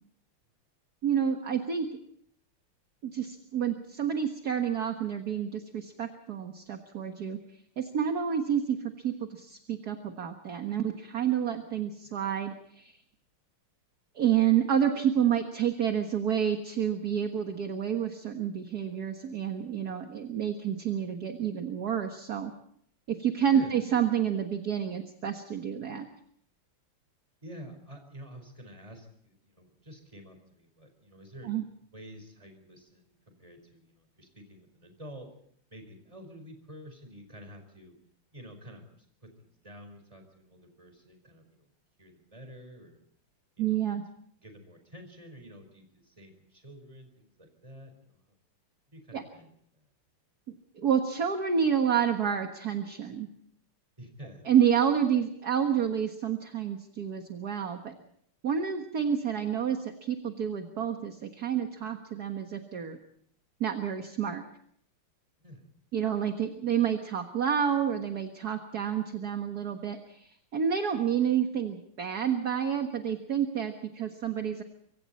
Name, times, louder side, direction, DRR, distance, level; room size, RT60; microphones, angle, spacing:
voice 1, 1.0-1.9 3.0-7.4 7.8-13.0 14.2-22.5 23.1-26.1 31.4-31.6 43.6-44.0 49.1-49.2 50.8-53.3 54.5-57.9 58.4-63.0 63.6-64.4 65.9-74.6, right 8 dB, 45° right, 5 dB, 1.9 m, -29 dB
voice 2, 23.5-23.9 27.4-31.5 31.9-35.3 35.7-38.0 38.3-38.9 39.2-41.7 42.0-43.0 43.6-44.0 44.4-48.2 48.9-49.8 54.0-54.5 65.4-65.7, equal, 15° right, 6 dB, 4.8 m, -49 dB
25.0 x 25.0 x 4.3 m, 0.67 s
omnidirectional pair, 2.4 m